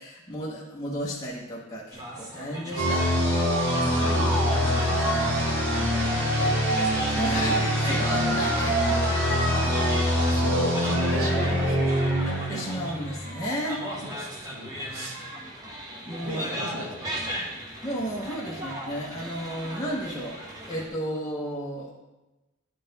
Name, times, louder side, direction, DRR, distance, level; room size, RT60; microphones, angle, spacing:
voice 1, 0.0-3.1 7.2-9.0 12.3-13.9 16.0-16.5 17.8-20.4 20.7-22.0, equal, 15° left, -5 dB, 0.6 m, -33 dB
sound 1, 1.9-20.9, equal, 15° right, 0.9 m, -37 dB
sound 2, 2.8-13.4, equal, 60° right, 1.7 m, -24 dB
voice 2, 3.8-6.5 7.1-7.8 9.6-12.0 13.8-13.9 14.2-15.2 16.2-17.1, right 1 dB, 85° right, 0 dB, 1.4 m, -37 dB
9.9 x 3.8 x 3.9 m, 1.0 s
head